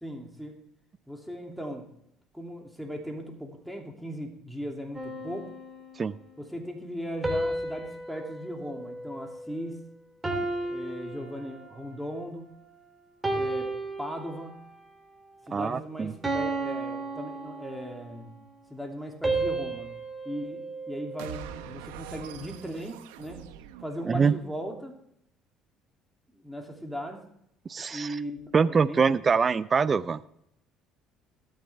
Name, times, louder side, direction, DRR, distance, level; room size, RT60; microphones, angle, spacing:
voice 1, 0.0-0.6 1.1-1.9 2.3-5.5 6.4-9.9 10.7-12.6 13.3-13.7 14.0-14.6 15.4-18.4 18.7-19.9 20.2-23.5 23.8-25.0 26.3-27.2 27.9-29.1, equal, ahead, 2 dB, 2.8 m, -38 dB
sound 1, 4.9-6.3 7.2-9.7 10.2-12.0 12.5-12.8 13.2-14.8 15.3-15.5 16.2-18.1 19.2-21.6, right 2 dB, 20° right, 3.1 m, -33 dB
voice 2, 15.5-16.1 24.1-24.3 27.7-28.1 28.5-30.2, right 5 dB, 35° right, 18 dB, 0.5 m, -24 dB
sound 2, 21.2-24.6, right 10 dB, 80° right, 1.1 m, -44 dB
20.5 x 9.1 x 3.5 m, 0.75 s
hypercardioid pair, 60°, 0 cm